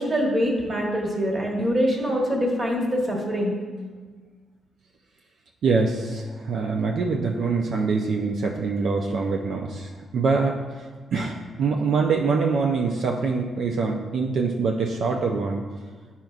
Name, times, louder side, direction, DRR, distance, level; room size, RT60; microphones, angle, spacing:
voice 1, 0.0-3.5, equal, 25° right, -1 dB, 1.3 m, -24 dB
voice 2, 5.6-15.6, right 4 dB, 65° right, 1 dB, 0.5 m, -24 dB
9.0 x 5.6 x 2.4 m, 1.5 s
cardioid pair, 125°, 0 cm